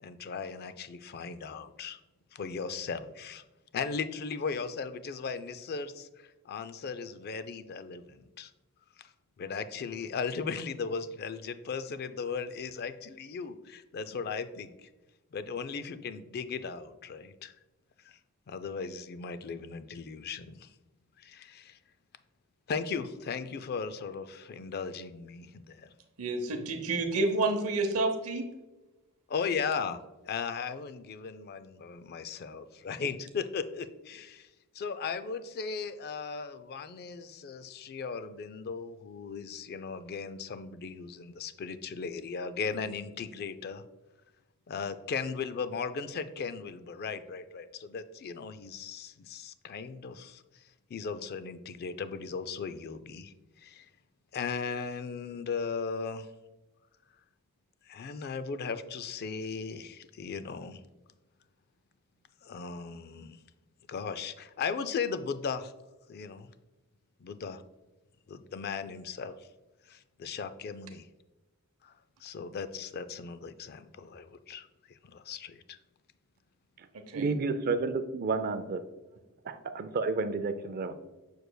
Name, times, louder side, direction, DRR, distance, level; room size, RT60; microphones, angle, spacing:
voice 1, 0.0-2.0 2.3-3.4 3.7-8.5 9.0-9.1 9.4-14.9 15.3-17.5 18.0-18.2 18.5-20.7 21.2-21.8 22.7-25.9 29.3-34.5 34.7-43.8 44.7-50.6 50.9-53.9 54.3-56.3 57.9-60.8 62.4-63.4 63.9-65.7 66.1-66.5 67.2-67.6 68.3-69.5 69.9-71.1 71.8-71.9 72.2-75.8, left 5 dB, 45° left, 13 dB, 0.3 m, -37 dB
voice 2, 26.2-28.5 76.9-77.3, right 2 dB, 75° right, 5 dB, 0.7 m, -29 dB
voice 3, 77.1-78.8 79.5-80.9, right 4 dB, 45° right, 11 dB, 0.4 m, -31 dB
6.8 x 6.3 x 2.2 m, 1.1 s
head